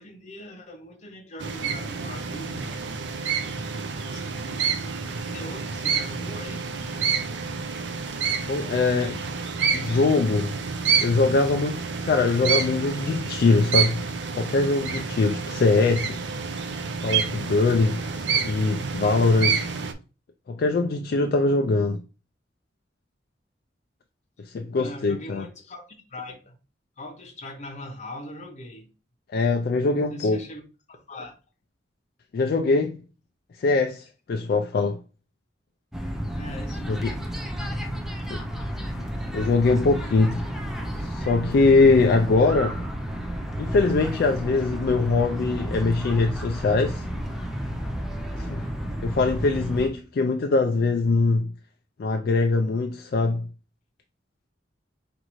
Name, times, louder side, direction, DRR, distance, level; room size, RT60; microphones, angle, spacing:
voice 1, 0.0-2.9 4.0-5.0 5.3-6.7 24.7-26.6 27.0-28.9 30.1-30.6 30.9-31.3 36.3-37.3 37.6-37.8, left 1 dB, 40° left, 0.8 m, -41 dB
sound 1, 1.4-19.9, right 6 dB, 75° right, 0.5 m, -28 dB
voice 2, 8.4-9.2 9.7-10.6 11.0-14.0 14.4-16.2 17.0-18.0 18.4-19.7 20.5-22.0 24.4-25.4 29.3-30.4 32.3-33.0 33.6-35.0 36.9-37.1 38.3-38.4 39.3-40.4 41.0-42.8 43.6-47.0 48.4-48.7 49.0-51.5 52.0-53.4, left 3 dB, 55° left, 0.3 m, -22 dB
sound 2, 35.9-49.9, equal, ahead, 0.5 m, -31 dB
5.2 x 2.5 x 3.0 m
head